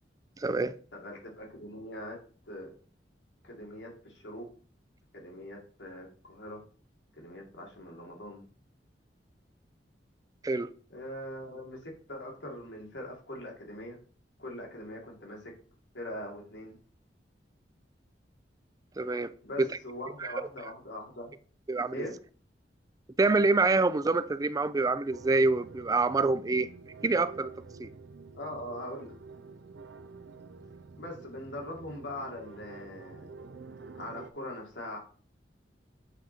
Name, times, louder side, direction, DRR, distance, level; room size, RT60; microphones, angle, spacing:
voice 1, 0.4-0.8 10.4-10.7 19.0-19.3 21.7-22.0 23.2-26.7 27.0-27.5 27.8-27.9, right 3 dB, 20° right, 0.4 m, -26 dB
voice 2, 0.9-2.2 2.4-2.7 3.4-4.5 5.1-6.6 7.2-8.4 10.9-14.0 14.4-15.5 15.9-16.8 19.4-21.3 21.9-22.1 28.3-29.1 31.0-33.3 33.9-35.0, left 1 dB, 85° left, 2.1 m, -42 dB
sound 1, 25.1-34.3, right 4 dB, 70° right, 0.5 m, -48 dB
8.1 x 3.8 x 4.4 m
head